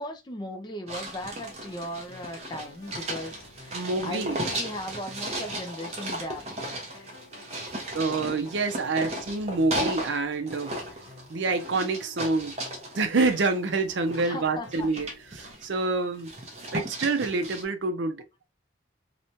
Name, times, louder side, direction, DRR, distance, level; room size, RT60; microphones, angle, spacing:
voice 1, 0.0-6.5 6.8-7.1 8.8-9.0 14.2-14.9, left 1 dB, 20° left, 0.4 m, -38 dB
sound 1, 0.9-10.2 10.5-14.3 14.7-15.8 16.2-17.6, right 1 dB, 35° right, 0.7 m, -36 dB
sound 2, 2.1-15.5, left 3 dB, 85° left, 0.9 m, -53 dB
voice 2, 3.7-4.4 7.9-10.8 11.3-12.5 12.9-15.1 15.3-16.3 16.7-18.5, right 3 dB, 70° right, 0.5 m, -27 dB
2.9 x 2.2 x 2.5 m
head